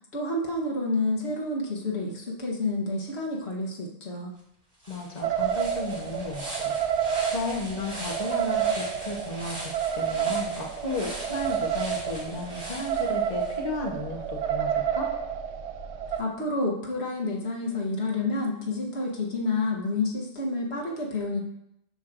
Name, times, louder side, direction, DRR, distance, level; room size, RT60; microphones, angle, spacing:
voice 1, 0.1-4.3 16.2-21.4, left 2 dB, 75° left, -2 dB, 1.4 m, -29 dB
sound 1, 4.4-4.5 4.8-13.6, right 1 dB, 55° right, 2.5 m, -41 dB
voice 2, 4.9-6.8 7.3-15.1, left 2 dB, 40° left, 0 dB, 1.1 m, -34 dB
sound 2, 5.2-16.2, right 8 dB, 85° right, 0.9 m, -29 dB
12.0 x 4.6 x 2.5 m, 0.79 s
omnidirectional pair, 1.1 m